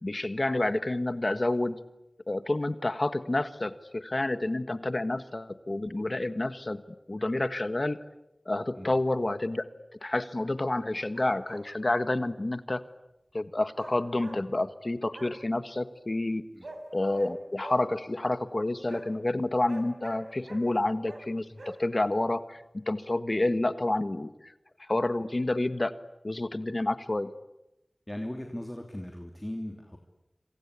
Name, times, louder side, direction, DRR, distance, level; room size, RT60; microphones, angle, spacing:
voice 1, 0.0-1.8 2.3-6.8 7.1-8.0 8.4-9.6 10.0-12.8 13.3-16.4 16.9-24.3 24.9-25.9 26.2-27.3, left 2 dB, 50° left, 12 dB, 1.5 m, -29 dB
sound 1, 11.0-11.6 13.7-14.4 15.1-15.3 16.6-16.8 17.1-17.3 17.6-17.8 18.9-19.0 19.7-20.6 21.0-21.2 21.6-21.8, right 1 dB, 80° right, 4.5 m, -44 dB
voice 2, 28.1-30.0, left 1 dB, 20° left, 3 dB, 3.0 m, -38 dB
27.0 x 26.5 x 8.4 m, 0.93 s
wide cardioid pair, 40°, 0 cm